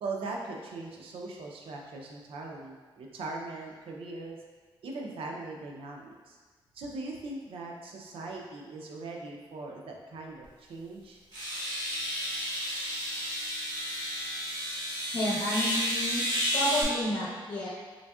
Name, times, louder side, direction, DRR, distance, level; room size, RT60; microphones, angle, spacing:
voice 1, 0.0-4.4 4.8-6.4 6.7-11.2, right 3 dB, 80° right, 0 dB, 0.5 m, -40 dB
sound 1, 10.4-10.5 11.3-16.8, equal, 55° right, 1.5 m, -32 dB
voice 2, 15.1-16.2 16.5-17.7, left 1 dB, 50° left, -6 dB, 0.8 m, -30 dB
3.8 x 3.4 x 2.3 m, 1.4 s
cardioid pair, 100°, 9 cm